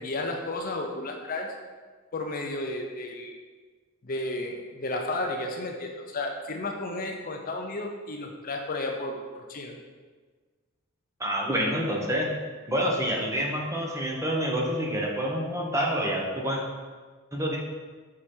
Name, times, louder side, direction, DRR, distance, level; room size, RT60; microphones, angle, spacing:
voice 1, 0.0-1.5 2.1-3.3 4.0-9.8, left 2 dB, 40° left, 2 dB, 0.6 m, -33 dB
voice 2, 11.2-12.3 12.7-16.6 17.3-17.6, equal, 15° right, -2 dB, 1.0 m, -27 dB
5.9 x 4.9 x 4.3 m, 1.4 s
head